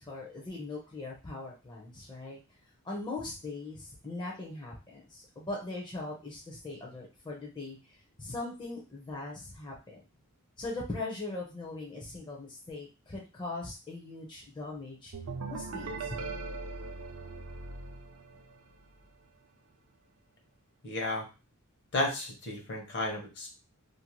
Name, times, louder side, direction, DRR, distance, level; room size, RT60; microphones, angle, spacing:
voice 1, 0.0-2.4 2.8-10.0 10.6-15.1 15.5-16.4, left 2 dB, 20° left, -2 dB, 0.5 m, -40 dB
sound 1, 15.1-18.8, right 3 dB, 80° right, 0.5 m, -40 dB
voice 2, 20.8-21.3 21.9-23.5, left 2 dB, 55° left, 1 dB, 0.9 m, -33 dB
2.6 x 2.1 x 2.9 m, 0.30 s
head